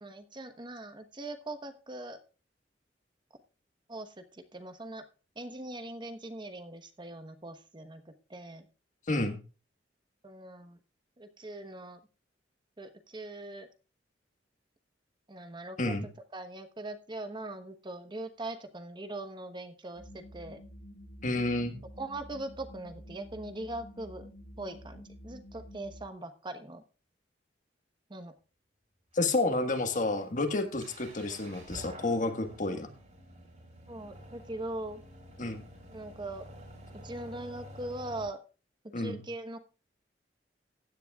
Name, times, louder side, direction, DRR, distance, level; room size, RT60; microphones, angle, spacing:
voice 1, 0.0-2.2 3.9-5.0 5.4-8.7 10.2-10.8 11.2-12.0 12.8-13.7 15.3-15.9 16.3-20.6 22.0-24.3 24.6-26.8 28.1-28.3 31.2-31.4 33.9-35.0 35.9-36.5 37.0-38.4 39.0-39.6, right 2 dB, 25° right, 8 dB, 1.1 m, -41 dB
voice 2, 9.1-9.4 15.8-16.1 21.2-21.7 29.1-32.9 35.4-35.6 38.9-39.2, left 2 dB, 45° left, 7 dB, 1.6 m, -30 dB
sound 1, 20.0-26.1, equal, 85° left, 5.7 m, -49 dB
sound 2, 29.1-38.3, equal, 40° right, 4.4 m, -50 dB
15.5 x 10.0 x 2.4 m, 0.34 s
head